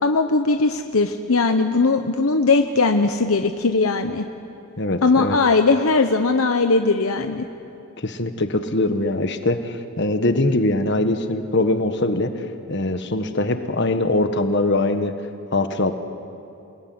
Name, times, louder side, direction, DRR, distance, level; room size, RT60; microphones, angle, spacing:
voice 1, 0.0-4.2 5.0-7.4, left 3 dB, 70° left, 6 dB, 0.9 m, -19 dB
voice 2, 4.8-5.4 8.0-12.3 12.7-15.1 15.5-15.9, left 2 dB, 50° left, 8 dB, 1.5 m, -22 dB
28.5 x 19.5 x 9.6 m, 2.8 s
head